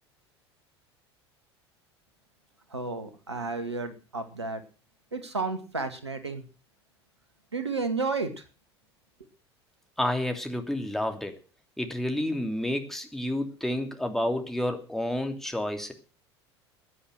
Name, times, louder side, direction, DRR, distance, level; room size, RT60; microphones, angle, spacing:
voice 1, 2.7-4.6 5.1-6.4 7.5-8.3, right 3 dB, 80° right, 9 dB, 2.3 m, -32 dB
voice 2, 10.0-11.4 11.8-15.9, left 1 dB, ahead, 4 dB, 2.9 m, -30 dB
15.5 x 10.0 x 6.4 m, 0.35 s
figure-of-eight pair, 70°, 14 cm